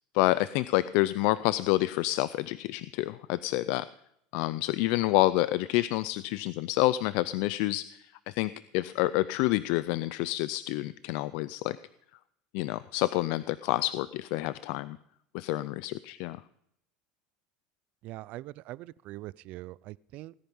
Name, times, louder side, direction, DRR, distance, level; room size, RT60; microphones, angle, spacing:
voice 1, 0.1-3.9 4.3-11.8 12.5-15.0 15.3-16.4, left 17 dB, 65° left, 0.4 m, -28 dB
voice 2, 18.0-20.3, right 17 dB, 50° right, 0.4 m, -42 dB
17.5 x 10.0 x 5.4 m
supercardioid pair, 130°, 3 cm